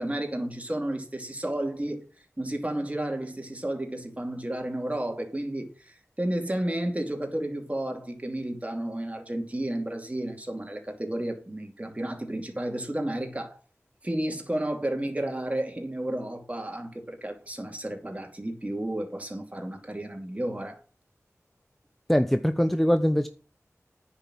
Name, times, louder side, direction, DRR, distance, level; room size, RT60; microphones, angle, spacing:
voice 1, 0.0-2.0 2.4-13.6 14.0-20.8, right 1 dB, 25° right, 2.7 m, -32 dB
voice 2, 22.1-23.3, equal, 5° left, 0.7 m, -22 dB
9.7 x 5.7 x 7.5 m
wide cardioid pair, 60°, 5 cm